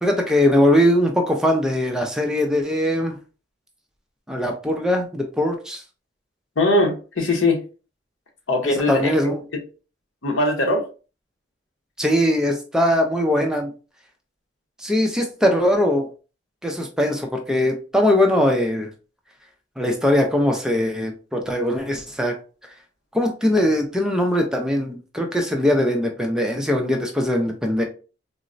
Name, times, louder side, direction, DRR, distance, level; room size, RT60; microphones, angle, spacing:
voice 1, 0.0-3.2 4.3-5.8 8.6-9.4 12.0-13.7 14.8-16.1 16.6-18.9 19.8-22.3 23.1-27.8, left 1 dB, 5° right, 0.4 m, -21 dB
voice 2, 6.6-7.6 8.5-9.3 10.2-10.8, left 2 dB, 85° left, 0.8 m, -20 dB
3.8 x 2.0 x 2.5 m
head